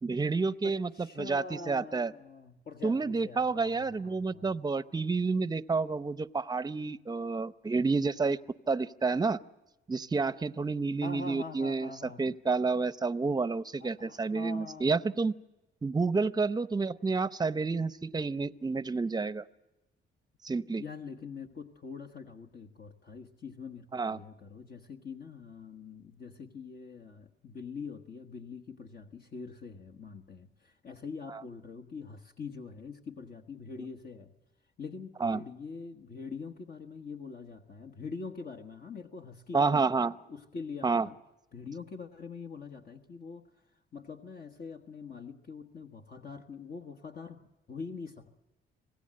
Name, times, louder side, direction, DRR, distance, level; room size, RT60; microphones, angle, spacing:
voice 1, 0.0-2.1 2.8-8.4 8.7-9.4 9.9-11.9 12.2-15.3 15.8-19.4 20.4-20.8 23.9-24.2 31.3-31.4 35.2-35.4 39.5-40.1 40.8-41.1, right 4 dB, 20° right, 16 dB, 0.7 m, -29 dB
voice 2, 0.6-4.5 11.0-12.2 13.8-15.1 20.8-34.3 34.8-41.2 41.5-43.4 43.9-48.4, left 4 dB, 50° left, 5 dB, 1.4 m, -44 dB
26.5 x 17.5 x 7.7 m, 1.0 s
cardioid pair, 90°, 20 cm